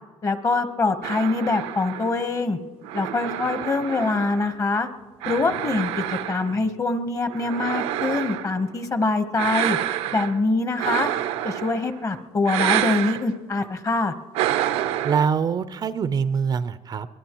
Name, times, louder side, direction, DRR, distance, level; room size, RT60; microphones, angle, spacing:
voice 1, 0.2-2.6 2.9-4.9 5.3-9.8 10.1-11.1 11.4-14.1, left 3 dB, 30° left, 9 dB, 1.1 m, -24 dB
sound 1, 1.0-4.7 5.2-6.7 7.3-8.6 9.4-10.4 10.8-12.0 12.4-13.2 14.3-15.3, right 12 dB, 85° right, 0.7 m, -28 dB
voice 2, 15.0-17.1, right 6 dB, 40° right, 13 dB, 0.5 m, -24 dB
23.0 x 20.0 x 3.0 m, 1.4 s
cardioid pair, 110°, 11 cm